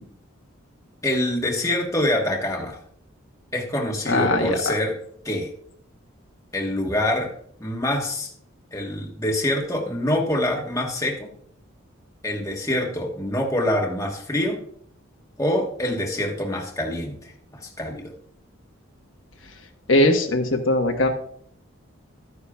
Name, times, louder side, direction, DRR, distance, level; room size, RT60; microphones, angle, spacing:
voice 1, 1.0-2.8 3.5-5.0 5.2-5.5 6.5-7.3 7.6-8.3 8.7-11.3 12.2-14.6 15.4-18.1, left 1 dB, 15° left, 0 dB, 1.3 m, -25 dB
voice 2, 4.1-4.7 19.9-21.1, left 1 dB, 70° left, 3 dB, 1.3 m, -20 dB
13.5 x 9.7 x 2.4 m, 0.62 s
head